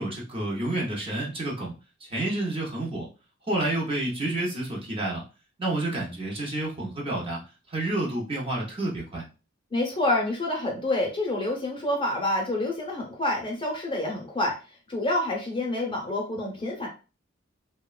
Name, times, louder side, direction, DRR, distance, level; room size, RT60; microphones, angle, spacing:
voice 1, 0.0-1.7 2.0-3.1 3.5-5.2 5.6-7.4 7.7-9.2, right 2 dB, 30° right, -3 dB, 0.7 m, -29 dB
voice 2, 9.7-14.6 14.9-16.9, left 1 dB, 25° left, 0 dB, 0.7 m, -27 dB
2.9 x 2.2 x 2.3 m, 0.32 s
head